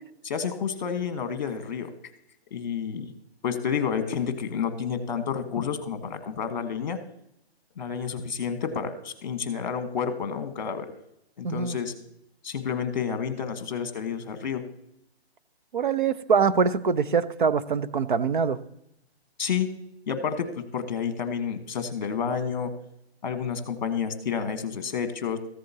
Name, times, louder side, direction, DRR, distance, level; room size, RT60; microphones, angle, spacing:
voice 1, 0.2-1.9 2.5-3.1 3.4-7.0 7.8-10.9 11.4-11.9 12.4-14.6 19.4-19.7 20.1-22.7 23.2-25.4, left 7 dB, 45° left, 9 dB, 1.3 m, -30 dB
voice 2, 11.4-11.8 15.7-18.6, right 5 dB, 50° right, 14 dB, 0.6 m, -24 dB
14.5 x 7.7 x 2.8 m, 0.80 s
hypercardioid pair, 170°, 32 cm